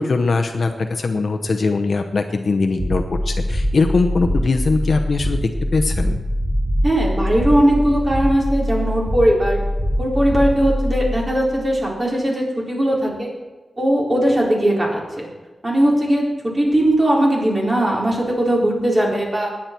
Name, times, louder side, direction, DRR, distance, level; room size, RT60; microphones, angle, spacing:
voice 1, 0.0-6.2, left 3 dB, 60° left, 5 dB, 0.9 m, -21 dB
sound 1, 2.8-11.9, equal, 15° right, 1.9 m, -23 dB
voice 2, 6.8-9.6 10.0-13.3 13.8-15.3 15.6-16.2 16.5-19.5, right 1 dB, 30° right, -3 dB, 4.2 m, -19 dB
20.0 x 8.7 x 4.5 m, 1.2 s
wide cardioid pair, 110°, 0 cm